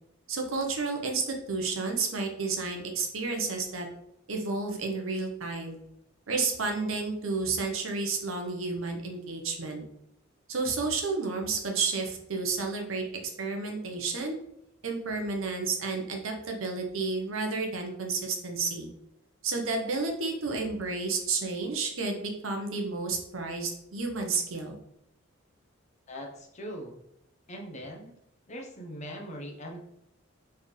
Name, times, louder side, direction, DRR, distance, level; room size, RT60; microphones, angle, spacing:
voice 1, 0.3-3.9 4.3-5.8 6.3-9.8 10.5-13.0 13.4-14.4 14.8-18.9 19.4-24.8, right 4 dB, 75° right, 3 dB, 0.9 m, -31 dB
voice 2, 26.1-27.0 27.5-28.1 28.5-29.8, equal, 35° left, 1 dB, 0.8 m, -41 dB
4.4 x 3.4 x 3.2 m, 0.79 s
head